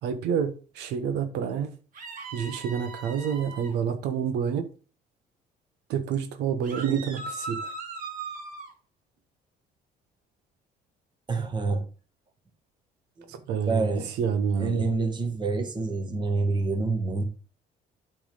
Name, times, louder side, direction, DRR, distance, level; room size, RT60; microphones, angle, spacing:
voice 1, 0.0-1.7 2.3-4.7 5.9-7.7 13.3-14.9, right 7 dB, 85° right, 1.1 m, -28 dB
sound 1, 1.9-3.7 6.6-8.7, right 3 dB, 55° right, 2.4 m, -38 dB
voice 2, 11.3-11.9 13.2-13.3 13.7-14.1 14.6-17.2, right 3 dB, 25° right, 1.6 m, -27 dB
8.6 x 3.5 x 5.2 m
cardioid pair, 110°, 17 cm